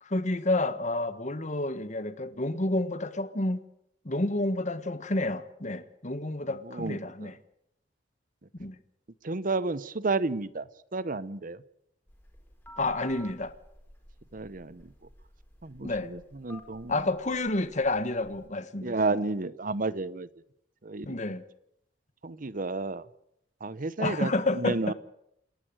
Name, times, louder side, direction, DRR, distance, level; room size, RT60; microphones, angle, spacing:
voice 1, 0.0-3.7 4.0-7.3 8.6-8.8 12.8-13.5 15.8-16.1 16.9-19.0 21.0-21.4 24.0-24.9, left 2 dB, 40° left, 1.5 m, -29 dB
voice 2, 6.6-7.3 9.2-10.6 10.9-11.6 14.3-14.9 15.6-16.9 18.8-20.3 20.8-21.1 22.2-23.0 23.6-24.9, right 3 dB, 50° right, 0.9 m, -31 dB
Telephone, 12.1-18.5, right 1 dB, 10° left, 4.6 m, -52 dB
28.0 x 11.5 x 9.1 m
head